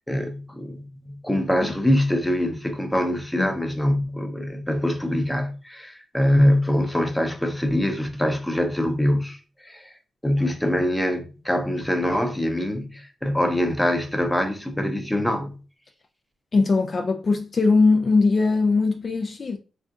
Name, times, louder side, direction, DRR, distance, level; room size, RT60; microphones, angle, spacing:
voice 1, 0.0-9.9 10.2-15.6, left 1 dB, 5° left, 0.6 m, -24 dB
voice 2, 16.5-19.6, left 3 dB, 45° left, 0.3 m, -20 dB
3.6 x 2.5 x 2.4 m
cardioid pair, 80°, 0 cm